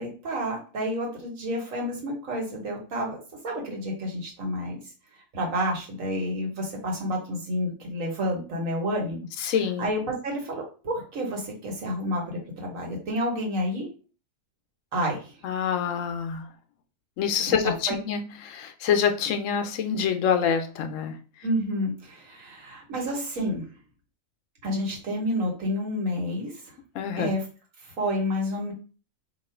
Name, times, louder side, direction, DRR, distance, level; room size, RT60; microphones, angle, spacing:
voice 1, 0.0-3.2 3.4-4.8 5.3-9.5 9.8-13.9 14.9-15.3 17.6-18.0 21.4-23.6 24.6-26.5 27.2-27.4 27.8-28.7, equal, 85° right, 0 dB, 1.6 m, -29 dB
voice 2, 9.4-9.9 15.4-16.5 17.2-21.1 26.9-27.3, left 7 dB, 80° left, 6 dB, 1.0 m, -26 dB
3.0 x 2.4 x 4.3 m, 0.36 s
omnidirectional pair, 1.4 m